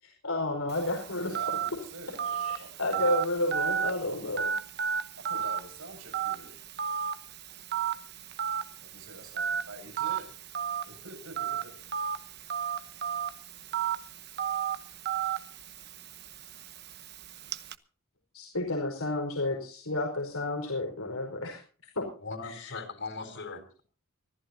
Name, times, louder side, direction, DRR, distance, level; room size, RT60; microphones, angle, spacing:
voice 1, 0.0-1.4 2.3-4.5 18.3-21.6 22.0-22.1 22.6-22.7, left 2 dB, 85° left, 0 dB, 5.2 m, -31 dB
Telephone, 0.7-17.7, right 8 dB, 50° right, 1.0 m, -34 dB
voice 2, 1.2-3.1 5.2-6.6 8.8-10.3 10.8-11.7, right 2 dB, 75° right, 4 dB, 7.6 m, -47 dB
voice 3, 22.2-23.8, left 3 dB, 60° left, 7 dB, 4.9 m, -39 dB
25.0 x 15.5 x 2.8 m, 0.40 s
head